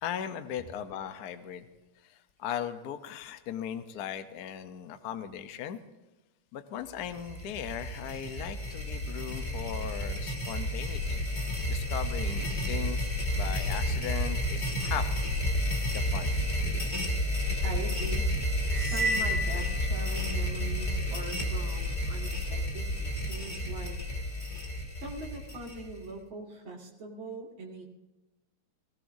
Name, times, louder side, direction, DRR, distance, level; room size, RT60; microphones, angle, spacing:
voice 1, 0.0-1.7 2.0-5.8 6.5-11.2 11.7-13.1 13.3-15.1 15.9-16.3, left 9 dB, 60° left, 9 dB, 1.1 m, -38 dB
sound 1, 7.0-26.1, left 1 dB, 20° left, 1.9 m, -31 dB
voice 2, 17.6-18.3 18.6-24.0 25.0-27.9, right 3 dB, 65° right, -2 dB, 3.1 m, -42 dB
sound 2, 18.7-20.5, equal, 25° right, 3.8 m, -32 dB
20.0 x 18.0 x 2.7 m, 1.1 s
omnidirectional pair, 2.4 m